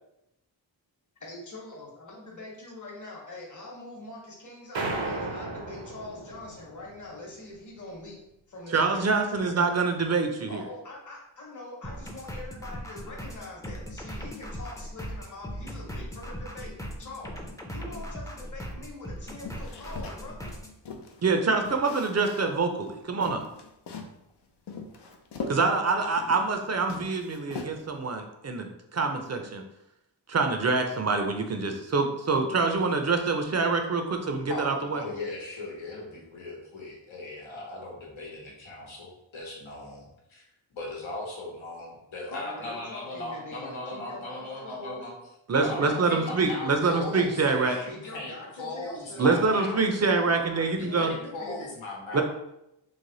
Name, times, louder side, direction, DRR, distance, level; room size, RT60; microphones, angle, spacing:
voice 1, 1.2-8.2 8.5-9.0 10.5-16.7 17.0-17.4 17.7-20.5 42.3-45.0 45.6-47.1 47.9-51.7 52.1-52.2, left 2 dB, 40° left, -2 dB, 1.1 m, -43 dB
sound 1, 4.7-7.2, right 2 dB, 70° right, 0.8 m, -34 dB
voice 2, 8.7-10.6 21.2-23.4 25.5-29.6 30.3-35.0 45.5-47.8 49.2-51.1 52.1-52.2, right 4 dB, 35° right, 5 dB, 0.6 m, -25 dB
sound 2, 11.8-20.7, equal, 5° left, 0.6 m, -39 dB
sound 3, 19.4-21.2 21.6-22.6 22.9-23.0 23.2-24.2 24.7-26.6 26.8-28.0, left 4 dB, 60° left, 0.6 m, -40 dB
voice 3, 34.5-40.4 40.7-45.1 45.6-49.8 50.8-52.2, left 2 dB, 80° left, -2 dB, 1.1 m, -38 dB
3.2 x 2.1 x 3.9 m, 0.85 s
cardioid pair, 60°, 47 cm